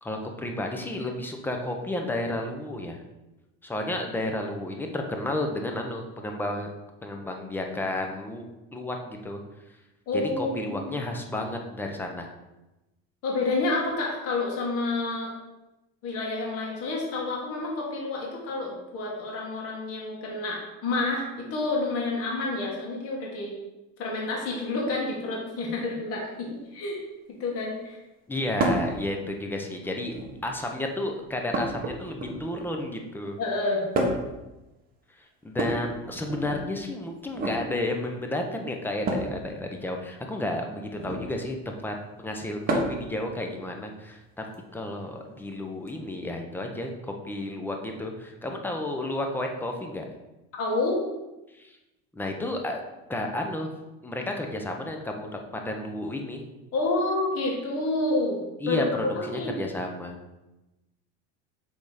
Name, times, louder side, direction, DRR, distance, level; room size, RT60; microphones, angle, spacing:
voice 1, 0.0-3.0 3.6-6.7 7.0-8.4 8.7-9.4 10.1-12.3 28.3-30.2 30.4-33.4 35.4-44.5 44.7-50.0 51.5-51.8 52.1-52.8 53.1-53.7 54.0-56.4 58.6-60.2, left 1 dB, 5° left, 3 dB, 0.7 m, -32 dB
voice 2, 10.1-10.8 13.2-15.3 16.0-23.5 24.0-27.0 27.4-28.0 33.4-33.8 50.6-51.0 56.7-58.4 58.7-59.7, left 2 dB, 50° left, -2 dB, 1.8 m, -29 dB
sound 1, 28.6-28.9 30.0-30.5 31.5-32.6 33.9-34.4 35.5-36.6 37.3-37.6 39.0-39.4 40.9-41.3 42.7-43.1 44.5-44.6 45.9-46.0, right 2 dB, 30° right, 1.2 m, -29 dB
6.6 x 3.6 x 4.9 m, 1.0 s
cardioid pair, 140°, 30 cm